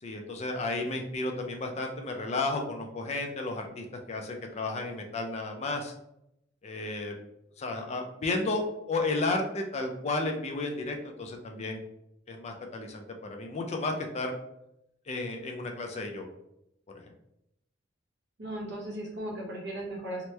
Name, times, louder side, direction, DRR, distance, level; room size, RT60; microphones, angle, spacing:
voice 1, 0.0-5.9 6.6-7.1 7.6-11.8 12.3-14.3 15.1-16.3 17.0-17.1, left 2 dB, 35° left, 3 dB, 0.4 m, -33 dB
voice 2, 18.4-20.3, right 1 dB, 60° right, -3 dB, 0.9 m, -37 dB
2.9 x 2.1 x 3.2 m, 0.80 s
head